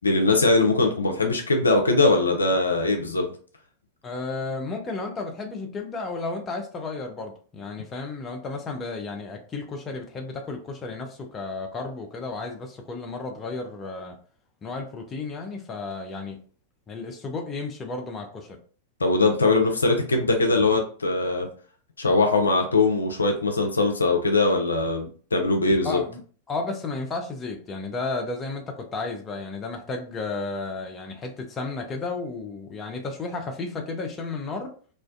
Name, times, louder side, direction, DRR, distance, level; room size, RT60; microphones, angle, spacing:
voice 1, 0.0-3.3 19.0-21.5 22.0-26.0, left 3 dB, 80° left, 3 dB, 0.4 m, -21 dB
voice 2, 4.0-14.1 14.6-16.4 16.9-18.6 25.8-26.2 26.5-34.7, left 3 dB, 25° left, 3 dB, 0.5 m, -33 dB
2.4 x 2.1 x 2.5 m, 0.42 s
figure-of-eight pair, 95°, 0 cm